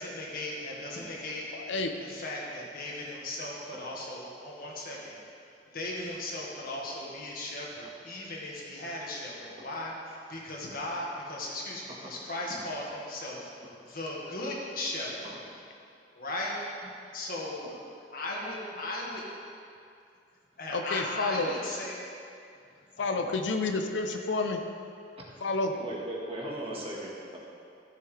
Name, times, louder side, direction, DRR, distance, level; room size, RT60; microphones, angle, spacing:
voice 1, 0.0-1.5 2.0-13.5 13.8-15.5 16.1-16.6 17.1-17.6 18.1-19.2 20.6-22.0 23.0-23.5, left 1 dB, 55° left, 1.8 m, -37 dB
voice 2, 1.5-1.9 20.7-21.5 23.0-24.6 25.4-25.7, left 3 dB, 80° left, 0.6 m, -29 dB
voice 3, 25.8-27.4, right 1 dB, 35° right, 1.6 m, -38 dB
13.5 x 7.6 x 3.3 m
head